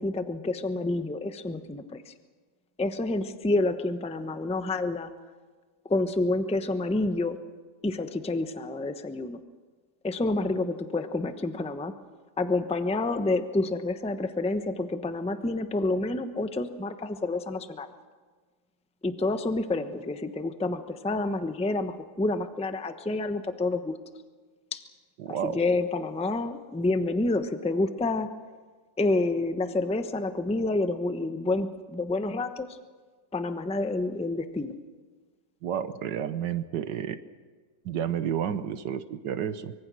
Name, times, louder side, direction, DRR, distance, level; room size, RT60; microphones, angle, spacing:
voice 1, 0.0-2.1 2.8-5.1 5.8-7.4 7.8-9.4 10.0-11.9 12.4-17.9 19.0-24.0 24.7-24.8 25.3-28.3 29.0-32.8 33.3-34.7, left 2 dB, 5° left, 8 dB, 0.7 m, -28 dB
voice 2, 25.2-25.6 35.6-37.2 37.8-39.7, right 9 dB, 75° right, 12 dB, 1.5 m, -31 dB
25.0 x 23.0 x 6.3 m, 1.5 s
omnidirectional pair, 2.0 m